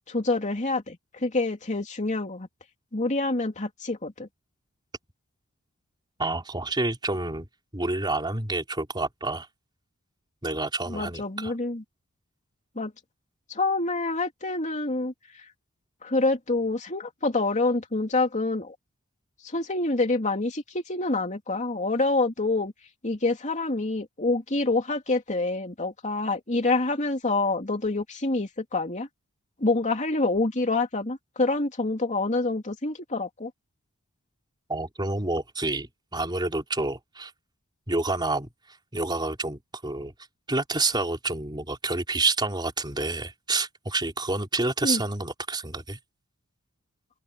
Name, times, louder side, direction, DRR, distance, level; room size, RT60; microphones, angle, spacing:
voice 1, 0.1-2.5 2.9-4.3 10.9-11.8 12.7-12.9 13.5-15.1 16.0-18.7 19.4-22.7 23.0-29.1 29.6-33.5 44.8-45.0, left 2 dB, 35° left, 2.9 m, -27 dB
voice 2, 6.2-7.5 7.7-9.5 10.4-11.5 34.7-37.3 37.9-38.5 38.9-40.1 40.5-46.0, right 2 dB, 20° right, 4.4 m, -28 dB
open air
head